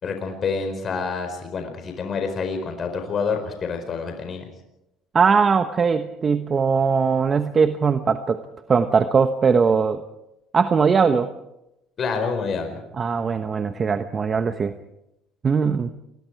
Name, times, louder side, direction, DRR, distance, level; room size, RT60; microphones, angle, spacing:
voice 1, 0.0-4.4 12.0-12.8, left 5 dB, 40° left, 5 dB, 4.6 m, -27 dB
voice 2, 5.1-8.4 8.7-10.0 10.5-11.3 13.0-14.8 15.4-15.9, right 5 dB, 30° right, 9 dB, 1.1 m, -20 dB
28.0 x 21.5 x 4.7 m, 0.88 s
cardioid pair, 105°, 0 cm